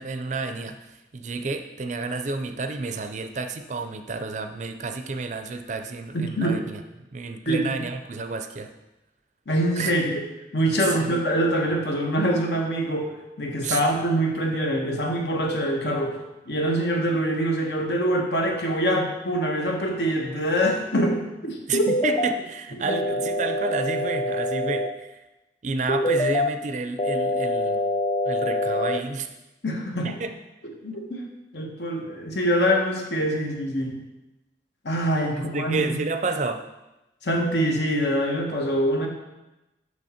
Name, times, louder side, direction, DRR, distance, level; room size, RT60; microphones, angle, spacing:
voice 1, 0.0-6.8 7.1-8.7 9.8-9.9 11.0-11.2 13.6-13.8 21.7-25.2 25.6-27.8 28.2-29.3 30.0-30.3 35.3-36.6, right 3 dB, 40° right, 8 dB, 0.4 m, -30 dB
voice 2, 6.1-6.6 7.5-7.7 9.5-10.2 10.5-16.2 16.4-21.9 22.9-23.0 29.6-30.2 30.8-31.2 31.5-34.0 34.8-36.0 37.2-39.1, equal, 70° left, 1 dB, 1.2 m, -24 dB
sound 1, 21.7-22.3 22.9-24.9 25.9-26.5 27.0-29.0, left 1 dB, 30° left, 0.3 m, -25 dB
6.3 x 6.0 x 4.3 m, 1.0 s
head